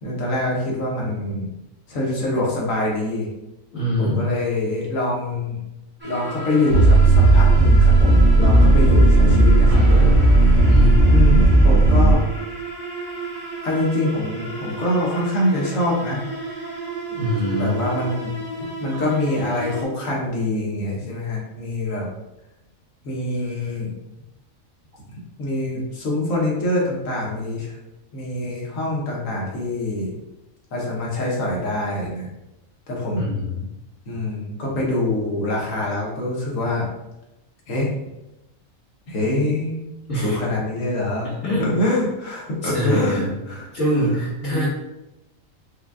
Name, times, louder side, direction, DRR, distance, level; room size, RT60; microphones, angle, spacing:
voice 1, 0.0-1.5 1.9-3.3 4.0-5.6 6.0-10.1 10.3-10.6 11.1-12.2 13.6-16.2 17.5-18.3 18.8-22.1 23.0-23.9 25.4-27.8 28.1-30.1 30.7-32.3 32.9-33.2 34.1-36.9 37.7-37.9 39.1-39.8 40.1-43.7 44.4-44.7, left 1 dB, 80° left, -3 dB, 1.4 m, -25 dB
voice 2, 3.7-4.4 10.6-11.1 17.1-17.8 33.1-33.6 40.1-40.4 41.2-41.7 42.6-43.3 43.7-44.7, equal, 45° left, -16 dB, 1.8 m, -24 dB
sound 1, 6.0-19.8, right 3 dB, 10° right, 0.9 m, -33 dB
sound 2, 6.7-12.1, right 2 dB, 65° right, 1.0 m, -13 dB
5.0 x 2.4 x 2.3 m, 0.95 s
omnidirectional pair, 1.4 m